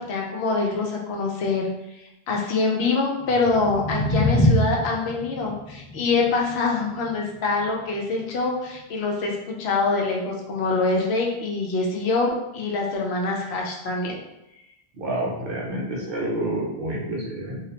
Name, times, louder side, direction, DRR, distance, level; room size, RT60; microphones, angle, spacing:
voice 1, 0.0-1.6 2.3-14.2, left 3 dB, 80° left, 0 dB, 0.8 m, -25 dB
sound 1, 3.2-9.3, left 1 dB, 25° left, 0.5 m, -26 dB
voice 2, 14.9-17.6, right 1 dB, 60° right, -4 dB, 0.8 m, -28 dB
2.4 x 2.0 x 2.8 m, 0.89 s
omnidirectional pair, 1.1 m